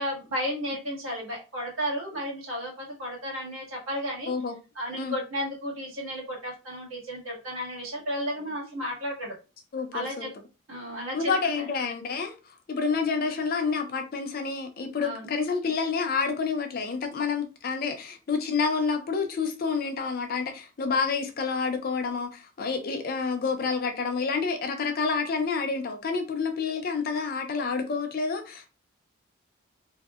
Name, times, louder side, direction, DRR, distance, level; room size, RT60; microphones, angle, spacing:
voice 1, 0.0-4.3 4.7-9.3 9.9-10.3 10.7-11.3 15.0-15.3, equal, 80° right, 1.3 m, -33 dB
voice 2, 9.7-10.3 11.1-28.7, left 5 dB, 45° left, 0.4 m, -29 dB
2.6 x 2.1 x 2.3 m
head